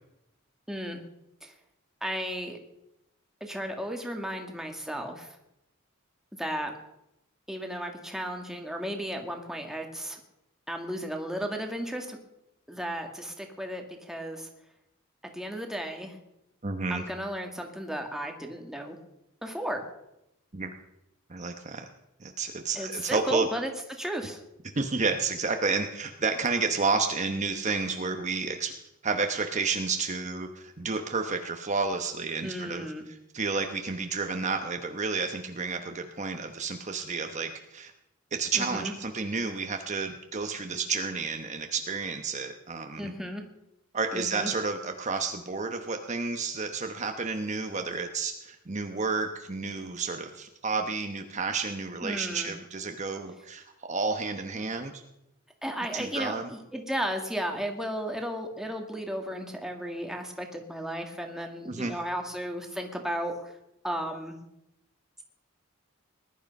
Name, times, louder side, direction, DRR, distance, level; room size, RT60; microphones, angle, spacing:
voice 1, 0.7-1.0 1.4-1.5 2.0-2.6 3.4-5.4 6.4-6.7 7.5-10.2 10.7-12.2 12.7-14.5 15.3-16.2 16.9-19.0 19.4-19.8 22.8-24.4 32.4-33.1 38.5-38.9 43.0-43.4 44.1-44.5 52.0-52.5 55.6-63.5 63.8-64.4, equal, ahead, 3 dB, 1.9 m, -34 dB
voice 2, 16.6-17.0 20.5-20.7 21.3-21.8 22.2-23.5 24.7-28.7 29.0-37.9 38.3-43.1 43.9-55.0 55.9-56.5 61.7-62.0, right 4 dB, 35° right, 5 dB, 1.0 m, -31 dB
20.0 x 12.0 x 5.4 m, 0.86 s
head